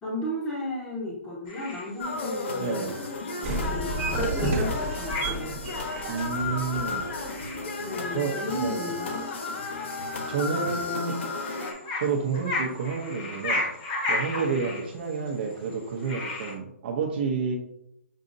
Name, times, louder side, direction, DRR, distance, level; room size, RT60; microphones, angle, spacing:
voice 1, 0.0-3.0 3.4-5.6 7.8-9.2 14.6-14.8, left 1 dB, 10° left, -7 dB, 0.9 m, -34 dB
sound 1, 1.5-16.5, left 2 dB, 35° left, 1.1 m, -37 dB
sound 2, 2.0-11.7, left 3 dB, 55° left, 0.8 m, -33 dB
voice 2, 2.6-2.9 6.1-7.0 8.1-8.9 10.3-11.2 12.0-13.7 14.1-17.6, right 5 dB, 45° right, 1 dB, 0.7 m, -29 dB
sound 3, 3.4-7.4, right 2 dB, 20° right, 1.0 m, -31 dB
6.2 x 2.7 x 2.6 m, 0.78 s
hypercardioid pair, 160°, 8 cm